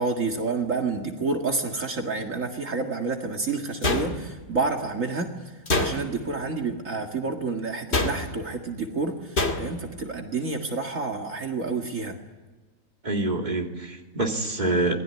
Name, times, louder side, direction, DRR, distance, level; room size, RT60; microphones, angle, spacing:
voice 1, 0.0-5.3 5.8-9.2 9.6-12.2, right 3 dB, 65° right, 2 dB, 2.4 m, -29 dB
sound 1, 3.8-4.5 5.7-6.3 7.9-8.5 9.4-9.9, left 2 dB, 50° left, 2.7 m, -26 dB
voice 2, 13.0-15.0, right 2 dB, 30° right, 1 dB, 3.1 m, -26 dB
27.5 x 21.0 x 9.7 m, 1.3 s
omnidirectional pair, 1.5 m